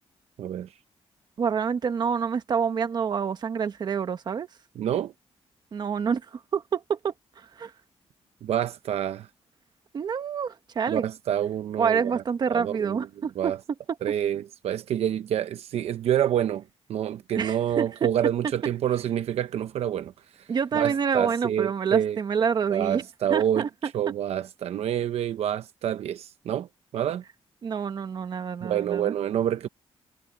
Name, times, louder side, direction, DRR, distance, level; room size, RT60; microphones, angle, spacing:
voice 1, 0.4-0.7 4.8-5.1 8.4-9.3 10.9-12.2 12.5-13.1 13.4-13.6 14.0-16.6 16.9-20.1 20.7-22.2 22.7-23.7 23.9-26.7 26.9-27.2 28.6-29.7, right 10 dB, 75° right, 0.8 m, -27 dB
voice 2, 1.4-4.5 5.7-7.7 9.9-11.0 11.8-13.5 17.4-17.9 20.5-23.0 23.3-23.7 27.6-29.1, right 6 dB, 40° right, 1.3 m, -27 dB
wide cardioid pair, 165°, 11 cm